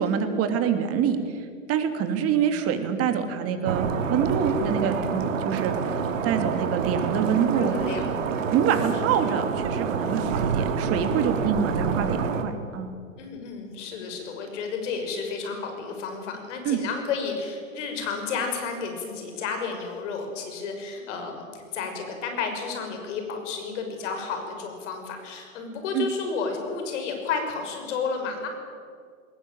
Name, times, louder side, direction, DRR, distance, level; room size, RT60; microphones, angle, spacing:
voice 1, 0.0-6.0 6.2-7.7 8.5-12.9 16.6-16.8 25.9-26.1, right 7 dB, 35° right, 7 dB, 3.0 m, -26 dB
sound 1, 3.7-12.4, right 6 dB, 70° right, 2.4 m, -27 dB
voice 2, 7.5-8.6 13.2-28.5, left 5 dB, 60° left, 4 dB, 6.1 m, -32 dB
21.0 x 19.5 x 9.0 m, 2.1 s
hypercardioid pair, 105°, 40 cm